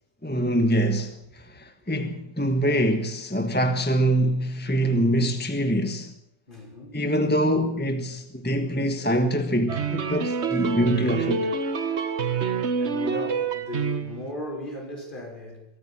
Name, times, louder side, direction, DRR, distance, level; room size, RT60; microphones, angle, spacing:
voice 1, 0.2-6.1 6.9-11.5, equal, 10° left, 1.3 m, -24 dB
voice 2, 6.5-7.0 11.9-12.1 12.7-15.7, left 2 dB, 50° left, 5.9 m, -36 dB
sound 1, 9.7-14.3, right 5 dB, 75° right, 1.6 m, -27 dB
24.0 x 14.0 x 8.7 m
omnidirectional pair, 1.1 m